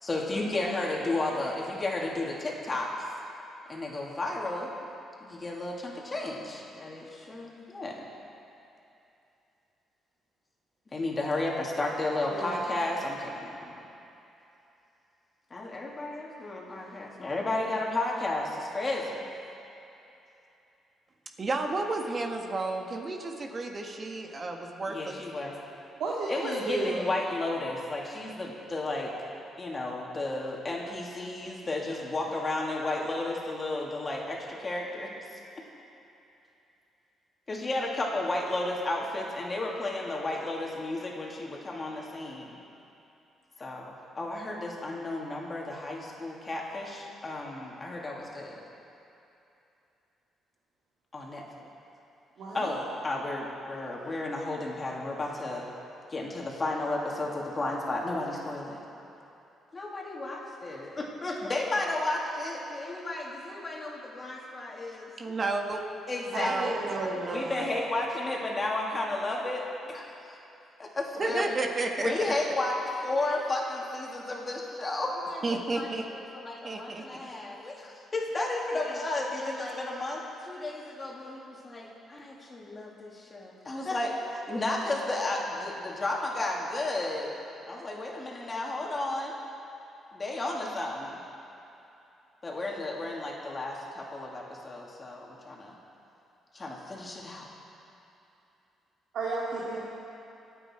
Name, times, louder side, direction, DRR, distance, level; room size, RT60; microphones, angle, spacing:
voice 1, 0.0-2.9 3.7-4.7 5.2-8.0 10.9-13.8 15.5-19.3 24.9-25.5 26.3-29.1 29.6-35.4 37.5-42.6 43.6-48.6 51.1-51.7 52.5-55.7 56.1-58.8 59.7-65.1 66.1-66.6 67.2-70.4 70.8-71.6 72.0-87.3 87.7-89.4 90.1-91.2 92.4-95.8 96.5-97.5, left 2 dB, 30° left, -2 dB, 2.8 m, -33 dB
voice 2, 12.3-12.6 26.0-27.1 52.4-52.7 66.3-67.4 99.1-99.8, right 3 dB, 75° right, -5 dB, 2.2 m, -32 dB
voice 3, 21.4-25.2 65.2-65.8 66.4-66.7 67.0-67.8 71.2-72.1 72.4-72.5 75.4-76.1 76.6-77.3, right 3 dB, 35° right, 2 dB, 1.8 m, -32 dB
26.0 x 8.9 x 4.7 m, 2.9 s
cardioid pair, 90°, 0 cm